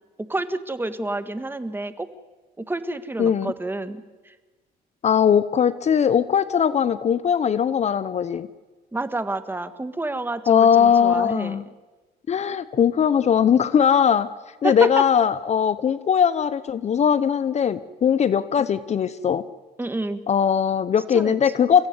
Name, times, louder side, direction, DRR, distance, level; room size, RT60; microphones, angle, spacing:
voice 1, 0.2-2.1 2.6-4.3 8.9-11.6 14.6-14.9 19.8-20.2 21.1-21.4, right 2 dB, 10° right, 11 dB, 1.8 m, -29 dB
voice 2, 3.2-3.5 5.0-8.5 10.5-11.6 12.3-14.3 14.6-19.4 20.3-21.9, left 8 dB, 40° left, 15 dB, 1.0 m, -20 dB
30.0 x 15.5 x 9.6 m, 1.3 s
cardioid pair, 110°, 17 cm